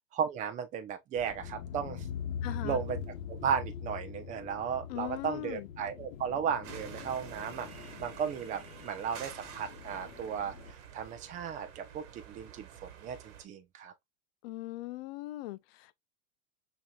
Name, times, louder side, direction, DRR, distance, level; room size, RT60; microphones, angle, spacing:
voice 1, 0.2-2.0 2.6-3.0 3.3-7.7 8.0-13.9, right 7 dB, 20° right, 0.6 m, -35 dB
sound 1, 1.2-10.7, left 7 dB, 70° left, 1.0 m, -43 dB
voice 2, 2.4-2.8 4.9-5.7 14.4-15.9, left 17 dB, 50° left, 0.5 m, -40 dB
sound 2, 6.6-13.4, right 8 dB, 50° right, 1.5 m, -49 dB
6.1 x 3.0 x 2.3 m
supercardioid pair, 145°, 41 cm